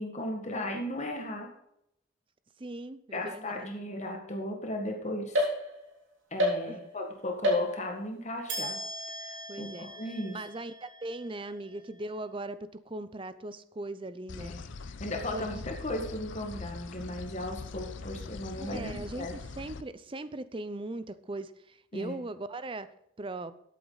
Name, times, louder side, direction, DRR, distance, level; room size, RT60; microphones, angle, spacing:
voice 1, 0.0-1.5 3.1-5.5 6.3-8.8 9.2-10.4 14.4-14.6 15.0-19.3 21.9-22.1, left 1 dB, 35° left, 2 dB, 1.8 m, -36 dB
voice 2, 2.6-3.7 6.6-6.8 9.5-9.9 10.3-14.5 15.3-15.5 18.6-22.9 23.2-23.5, right 2 dB, 25° right, 14 dB, 0.6 m, -39 dB
sound 1, 5.3-6.0 6.4-7.0 7.4-8.1 8.5-11.9, equal, 75° right, 3.4 m, -33 dB
sound 2, 14.3-19.8, left 4 dB, 65° left, 0.6 m, -42 dB
13.0 x 8.5 x 4.0 m, 0.75 s
head